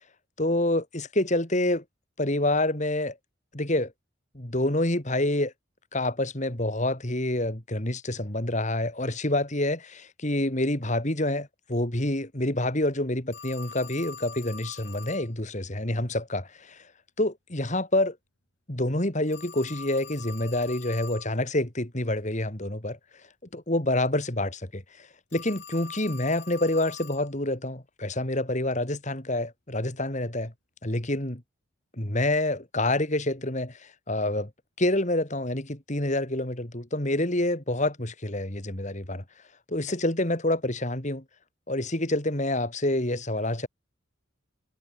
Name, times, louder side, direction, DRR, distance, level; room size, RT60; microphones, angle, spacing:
voice 1, 0.4-1.8 2.2-3.2 3.5-3.9 4.3-5.5 5.9-16.8 17.2-18.2 18.7-23.0 23.5-30.5 30.8-31.4 31.9-34.5 34.8-39.2 39.7-41.2 41.7-43.7, left 1 dB, 35° left, 2.9 m, -27 dB
Telephone, 13.3-15.3 19.3-21.3 25.3-27.3, left 6 dB, 55° left, 3.5 m, -44 dB
head